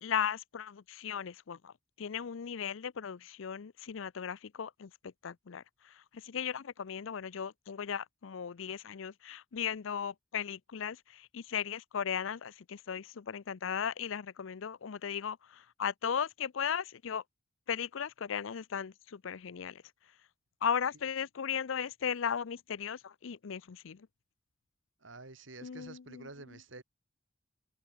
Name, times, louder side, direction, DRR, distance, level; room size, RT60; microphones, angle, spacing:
voice 1, 0.0-4.9 5.2-17.2 17.7-19.8 20.6-24.1 25.6-26.6, left 7 dB, 80° left, 0.5 m, -37 dB
voice 2, 25.0-26.8, right 3 dB, 75° right, 2.6 m, -49 dB
head